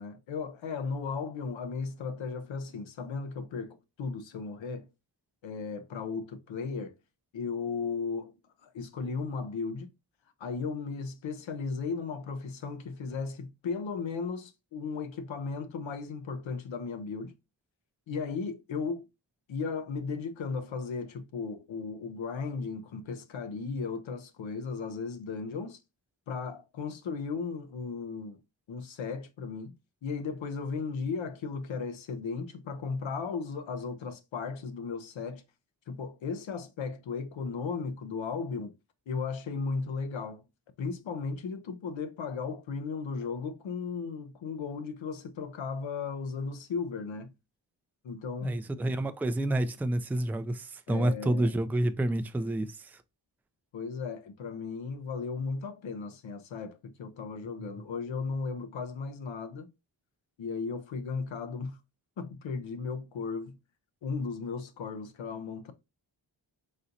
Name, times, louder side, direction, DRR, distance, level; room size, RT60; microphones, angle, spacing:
voice 1, 0.0-4.9 5.4-6.9 7.3-8.3 8.6-9.9 10.4-17.3 18.1-19.1 19.5-25.8 26.3-28.4 28.7-29.7 30.0-35.4 35.9-38.7 39.1-40.4 40.8-47.3 48.0-48.6 50.9-51.5 53.7-59.7 60.4-61.8 62.2-63.6 64.0-65.7, left 5 dB, 75° left, 0.8 m, -36 dB
voice 2, 48.4-52.8, right 1 dB, 5° right, 0.3 m, -29 dB
4.2 x 3.9 x 2.5 m
wide cardioid pair, 85°, 46 cm